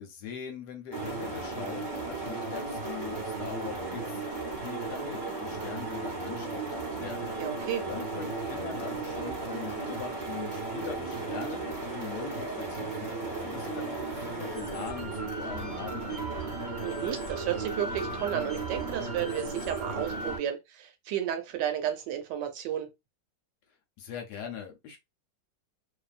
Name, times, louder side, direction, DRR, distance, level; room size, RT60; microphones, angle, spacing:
voice 1, 0.0-7.3 7.9-16.5 24.0-25.0, left 7 dB, 70° left, 1.1 m, -42 dB
sound 1, 0.9-20.4, right 3 dB, 30° right, 1.0 m, -35 dB
voice 2, 7.4-7.9 16.8-22.9, right 10 dB, 75° right, 1.2 m, -32 dB
2.7 x 2.5 x 2.4 m
omnidirectional pair, 2.0 m